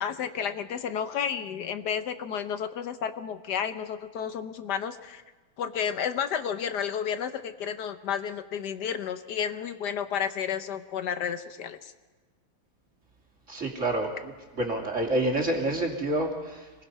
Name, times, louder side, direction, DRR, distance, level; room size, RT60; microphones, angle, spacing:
voice 1, 0.0-5.2 5.6-11.9, left 8 dB, 70° left, 10 dB, 1.5 m, -31 dB
voice 2, 13.5-14.1 14.6-16.8, right 1 dB, 45° right, 1 dB, 3.0 m, -28 dB
26.0 x 20.0 x 5.5 m, 1.3 s
omnidirectional pair, 1.9 m